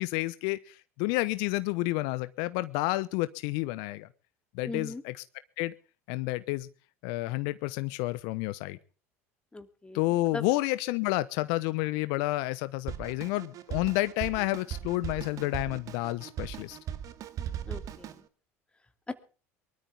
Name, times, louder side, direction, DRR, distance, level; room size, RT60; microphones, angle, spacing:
voice 1, 0.0-4.1 4.5-5.2 5.6-5.7 6.1-6.7 7.0-8.8 9.9-16.8, left 19 dB, 65° left, 14 dB, 1.0 m, -30 dB
voice 2, 4.7-5.0 9.5-10.0 10.3-10.4 17.6-18.2 19.1-19.2, left 2 dB, 15° left, 9 dB, 2.8 m, -38 dB
Drum kit, 12.9-18.2, right 9 dB, 50° right, 2.0 m, -39 dB
24.0 x 13.0 x 3.6 m, 0.38 s
hypercardioid pair, 75°, 8 cm